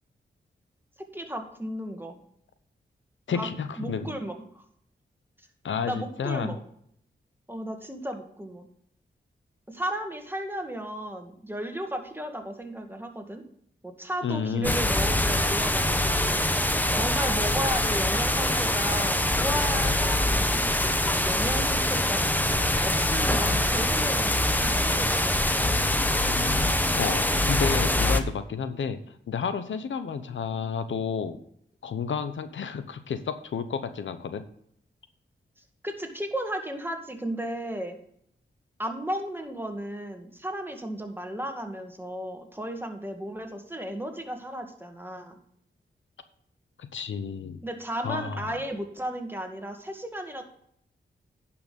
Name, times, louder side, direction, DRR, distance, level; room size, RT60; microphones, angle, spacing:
voice 1, 1.1-2.2 3.3-3.5 3.8-4.6 5.8-6.6 7.5-8.7 9.7-13.4 13.8-16.4 17.0-22.2 22.8-25.7 35.8-38.0 38.8-45.4 47.6-50.4, right 1 dB, 10° right, 4 dB, 2.0 m, -34 dB
voice 2, 3.3-4.1 5.6-6.6 14.2-14.8 27.0-29.0 29.3-31.4 31.8-34.4 46.8-47.6 48.0-48.6, left 6 dB, 75° left, 11 dB, 0.8 m, -31 dB
sound 1, 14.6-28.2, left 1 dB, 10° left, 1.0 m, -24 dB
10.5 x 5.9 x 5.2 m, 0.70 s
cardioid pair, 55°, 20 cm